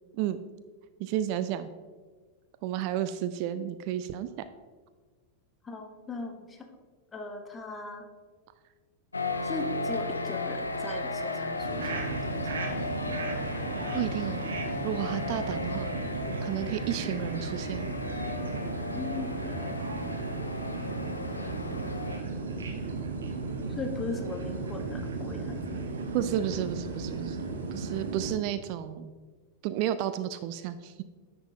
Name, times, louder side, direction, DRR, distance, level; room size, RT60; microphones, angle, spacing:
voice 1, 1.0-1.7 2.6-4.3 13.9-14.4 14.8-15.9 16.4-17.9 26.1-29.1 29.6-31.0, right 11 dB, 45° right, 12 dB, 0.3 m, -32 dB
voice 2, 5.6-6.6 7.1-8.1 9.4-12.6 18.9-19.6 22.8-23.0 23.7-25.9, left 3 dB, 20° left, 4 dB, 1.1 m, -39 dB
sound 1, 9.1-22.2, left 2 dB, 80° left, 0.5 m, -35 dB
sound 2, 11.6-28.3, right 3 dB, 70° right, 0.9 m, -35 dB
10.0 x 6.6 x 2.7 m, 1.4 s
figure-of-eight pair, 90°, 0 cm